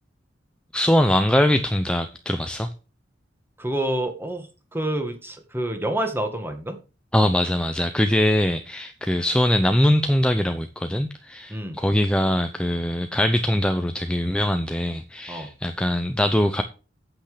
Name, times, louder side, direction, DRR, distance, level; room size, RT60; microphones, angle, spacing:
voice 1, 0.7-2.7 7.1-16.6, left 1 dB, 5° left, 0.7 m, -22 dB
voice 2, 3.6-6.8 11.5-11.8 15.3-15.5, right 1 dB, 10° right, 1.8 m, -28 dB
8.8 x 8.2 x 5.0 m
head